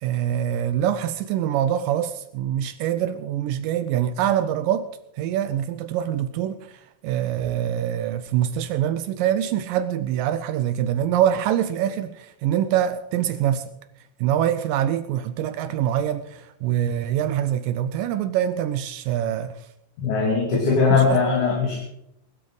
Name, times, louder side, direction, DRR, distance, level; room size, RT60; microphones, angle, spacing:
voice 1, 0.0-4.9 5.2-13.6 14.2-19.7 20.8-21.2, right 10 dB, 80° right, 10 dB, 2.0 m, -24 dB
voice 2, 20.0-21.8, left 4 dB, 55° left, -3 dB, 3.7 m, -20 dB
21.0 x 12.0 x 3.9 m, 0.81 s
omnidirectional pair, 4.5 m